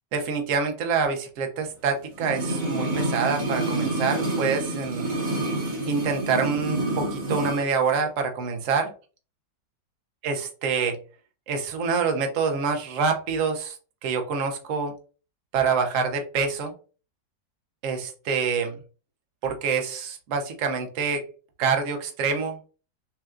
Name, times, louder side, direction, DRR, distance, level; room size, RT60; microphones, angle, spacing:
voice 1, 0.1-5.1 5.9-8.9 10.2-11.0 11.5-13.8 14.0-14.9 15.5-16.7 17.8-18.8 19.4-21.3 21.6-22.6, right 5 dB, 55° right, 4 dB, 1.0 m, -26 dB
sound 1, 2.1-7.6 7.9-8.0, right 2 dB, 80° right, 2.0 m, -28 dB
5.5 x 2.4 x 2.5 m, 0.36 s
omnidirectional pair, 1.9 m